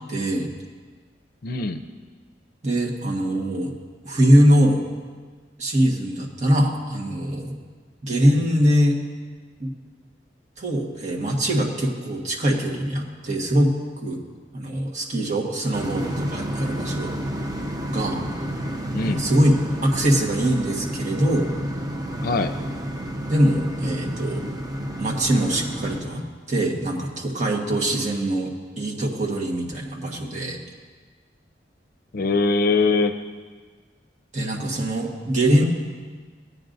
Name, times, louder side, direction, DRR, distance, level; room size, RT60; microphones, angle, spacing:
voice 1, 0.1-0.5 2.6-3.7 4.0-4.8 5.6-7.6 8.0-9.0 9.6-9.7 10.6-13.7 14.0-14.2 14.5-17.1 17.9-18.2 19.0-19.6 19.8-21.5 23.3-24.4 25.0-30.6 34.3-35.6, equal, 40° right, -2 dB, 1.5 m, -22 dB
voice 2, 1.4-1.8 18.9-19.3 22.2-22.5 32.1-33.2, left 3 dB, 55° left, 9 dB, 0.5 m, -22 dB
sound 1, 15.7-26.0, equal, 20° right, 0.7 m, -30 dB
17.5 x 9.6 x 2.6 m, 1.5 s
head